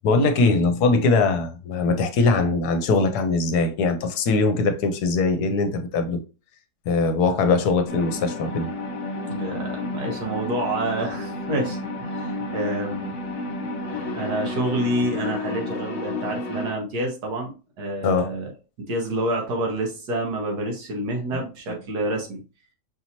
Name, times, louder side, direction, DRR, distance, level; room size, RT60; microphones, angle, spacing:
voice 1, 0.0-6.2 6.9-8.7 18.0-18.3, left 3 dB, 75° left, 1.2 m, -21 dB
sound 1, 7.9-16.7, left 2 dB, 60° left, 1.3 m, -31 dB
voice 2, 9.2-13.2 14.1-18.5 18.9-22.4, right 1 dB, 75° right, 1.8 m, -28 dB
5.4 x 2.8 x 2.8 m
omnidirectional pair, 1.8 m